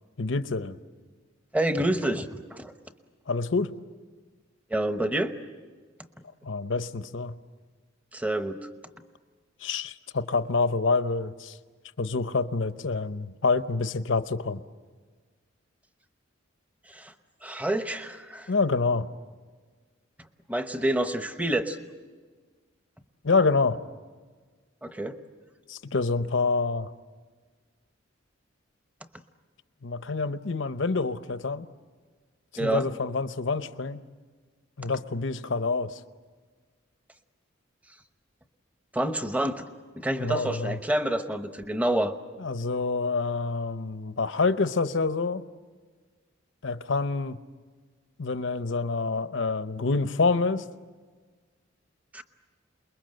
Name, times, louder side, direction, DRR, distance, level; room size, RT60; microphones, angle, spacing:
voice 1, 0.2-0.8 3.3-3.7 6.4-7.4 9.6-11.6 12.0-14.6 18.5-19.1 23.2-23.8 25.7-26.9 29.8-31.7 32.6-34.0 34.8-36.0 40.2-40.8 42.4-45.4 46.6-47.4 48.2-50.6, left 4 dB, 65° left, 12 dB, 0.8 m, -27 dB
voice 2, 1.5-2.7 4.7-5.3 8.1-8.7 16.9-17.1 17.4-18.5 20.5-21.8 24.8-25.1 32.6-32.9 38.9-39.6 40.0-42.1 52.1-52.2, right 1 dB, 5° right, 8 dB, 0.9 m, -28 dB
28.5 x 21.5 x 7.8 m, 1.5 s
head